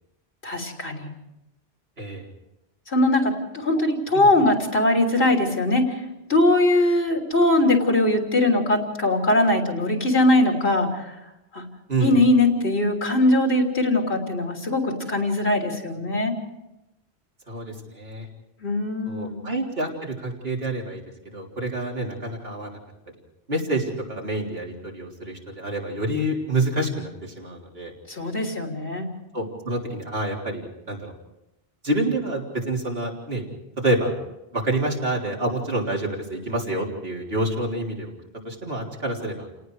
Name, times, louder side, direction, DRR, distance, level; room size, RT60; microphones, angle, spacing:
voice 1, 0.4-1.1 2.9-5.8 6.3-11.1 11.5-11.6 12.0-16.3 18.6-19.4 28.1-29.1, left 1 dB, 75° left, 1 dB, 3.6 m, -21 dB
voice 2, 11.9-12.2 17.5-18.3 19.1-21.0 21.3-22.8 23.5-27.9 29.3-31.1 31.8-33.5 33.8-34.2 34.5-38.1 38.4-39.5, right 1 dB, 75° right, -1 dB, 4.0 m, -27 dB
30.0 x 19.0 x 4.9 m, 0.89 s
omnidirectional pair, 1.1 m